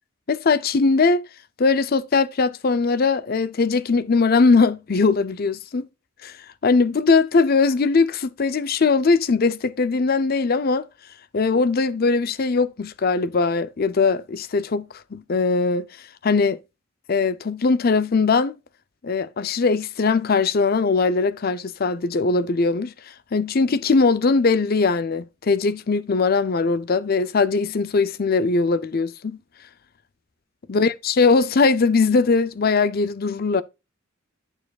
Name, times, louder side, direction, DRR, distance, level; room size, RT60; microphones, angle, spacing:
voice 1, 0.3-1.2 1.6-5.9 6.2-6.3 6.6-10.9 11.3-15.8 16.2-16.6 17.1-18.6 19.0-22.9 23.3-29.4 30.7-33.6, left 4 dB, 45° left, 0.5 m, -20 dB
8.9 x 6.9 x 2.4 m
head